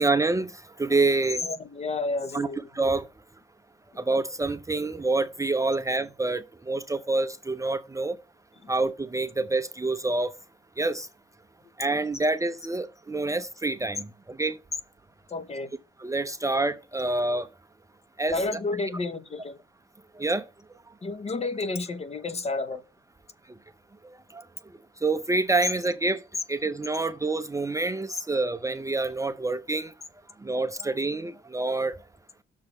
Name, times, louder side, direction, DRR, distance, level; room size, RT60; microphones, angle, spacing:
voice 1, 0.0-1.4 2.3-2.5 2.7-3.1 4.0-8.2 8.7-10.3 10.8-11.1 11.8-14.6 16.0-17.5 18.2-18.6 20.2-20.5 24.0-24.4 25.0-26.2 26.5-29.9 30.4-32.0, right 3 dB, 15° right, 0.6 m, -27 dB
voice 2, 1.4-2.7 8.6-8.7 15.3-15.7 18.3-19.6 21.0-22.8, left 3 dB, 30° left, 0.9 m, -31 dB
6.4 x 3.9 x 5.8 m
cardioid pair, 90°, 20 cm